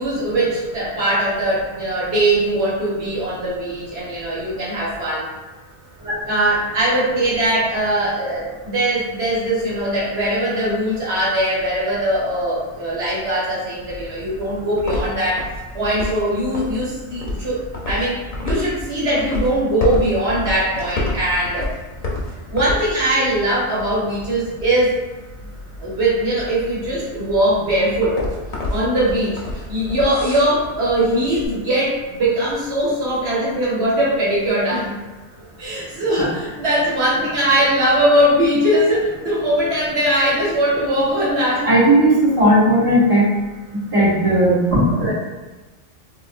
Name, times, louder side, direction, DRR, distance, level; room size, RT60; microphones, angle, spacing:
voice 1, 0.0-5.3 6.2-15.5 15.7-17.6 17.9-21.7 22.0-22.2 22.5-25.0 25.8-28.2 28.7-35.0 35.6-41.7 45.0-45.1, right 1 dB, 70° right, -6 dB, 1.1 m, -20 dB
sound 1, 13.8-31.5, left 2 dB, 40° left, 0.6 m, -30 dB
voice 2, 41.7-43.2 43.9-44.8, right 1 dB, 30° right, -8 dB, 1.1 m, -15 dB
3.6 x 2.4 x 2.4 m, 1.2 s
omnidirectional pair, 1.1 m